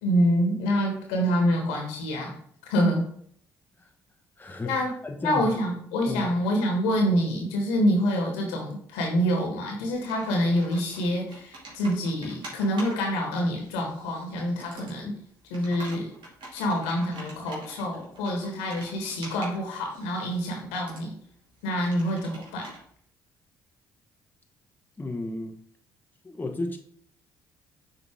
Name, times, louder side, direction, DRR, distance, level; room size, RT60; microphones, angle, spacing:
voice 1, 0.0-2.4 2.7-3.1 4.6-4.9 5.2-15.1 15.5-16.1 16.5-21.1 21.6-22.7, equal, 75° left, 1 dB, 1.6 m, -26 dB
voice 2, 4.4-4.7 5.0-5.5 6.0-6.3 25.0-25.6 26.2-26.8, left 2 dB, 20° left, 3 dB, 1.0 m, -33 dB
Computer keyboard, 9.9-22.8, right 2 dB, 55° right, 2.3 m, -47 dB
6.9 x 4.0 x 3.6 m, 0.63 s
hypercardioid pair, 50°, 10 cm